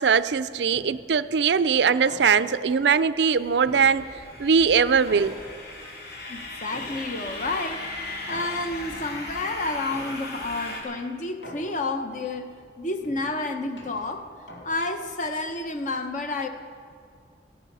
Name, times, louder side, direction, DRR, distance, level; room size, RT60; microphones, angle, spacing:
voice 1, 0.0-4.1 4.4-5.4, right 6 dB, 70° right, 15 dB, 0.5 m, -21 dB
sound 1, 0.7-1.2 2.1-2.7 3.6-4.4 5.1-5.9 6.7-7.4 8.3-9.0 9.9-10.5 11.4-12.1 13.0-15.1, equal, 90° left, 2.8 m, -44 dB
snowmobiles pass by nearish, 3.2-10.8, left 2 dB, 60° left, 3.6 m, -38 dB
voice 2, 6.3-7.9 8.3-14.3 14.6-16.5, left 2 dB, 45° left, 6 dB, 1.0 m, -30 dB
16.5 x 16.0 x 5.5 m, 2.2 s
head